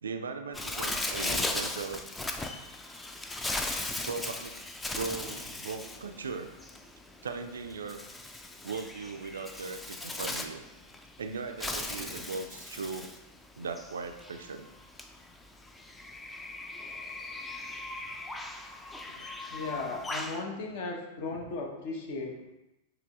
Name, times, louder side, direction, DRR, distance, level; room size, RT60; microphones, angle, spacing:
voice 1, 0.0-2.1 4.1-4.6 4.9-6.5 7.2-8.0 8.6-10.6 11.2-13.1 13.6-14.7 19.1-19.3, right 4 dB, 70° right, 7 dB, 0.4 m, -38 dB
Bird, 0.5-20.4, left 2 dB, 10° left, 0.4 m, -38 dB
voice 2, 19.5-22.5, left 3 dB, 55° left, 1 dB, 1.0 m, -36 dB
6.7 x 3.3 x 2.4 m, 0.95 s
figure-of-eight pair, 90°, 0 cm